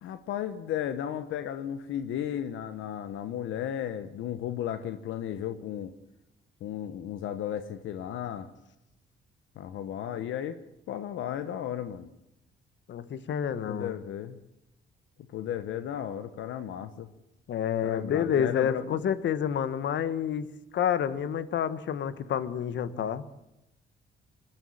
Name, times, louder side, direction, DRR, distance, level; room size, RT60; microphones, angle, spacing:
voice 1, 0.0-5.9 6.6-8.5 9.6-10.6 10.9-12.1 13.6-14.4 15.3-17.1 17.8-19.0, left 10 dB, 80° left, 11 dB, 1.2 m, -34 dB
voice 2, 12.9-13.9 17.5-20.5 20.7-23.2, left 8 dB, 65° left, 14 dB, 1.4 m, -29 dB
22.0 x 13.5 x 8.8 m, 0.88 s
cardioid pair, 90°, 20 cm